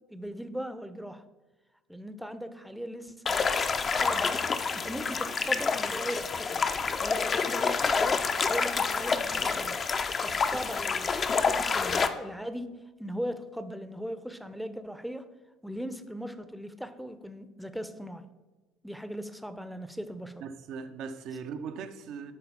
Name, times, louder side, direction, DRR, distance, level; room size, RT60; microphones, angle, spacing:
voice 1, 0.1-1.2 1.9-3.5 3.9-4.5 4.7-6.6 7.0-9.8 10.2-15.3 15.6-18.3 18.8-20.4, equal, ahead, 0.7 m, -39 dB
sound 1, 3.3-12.1, left 5 dB, 35° left, 0.7 m, -28 dB
voice 2, 20.4-22.3, right 6 dB, 60° right, 0.7 m, -39 dB
11.0 x 4.0 x 5.6 m
hypercardioid pair, 60°, 0 cm